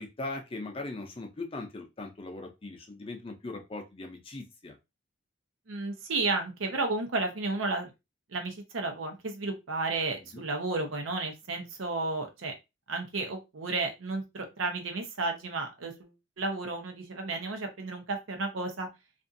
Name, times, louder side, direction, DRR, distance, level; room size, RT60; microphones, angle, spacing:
voice 1, 0.0-4.8 10.3-10.4, left 2 dB, 30° left, 4 dB, 0.5 m, -39 dB
voice 2, 5.7-7.9 8.3-12.5 12.9-18.9, right 3 dB, 85° right, 4 dB, 0.7 m, -32 dB
2.5 x 2.4 x 2.6 m, 0.24 s
head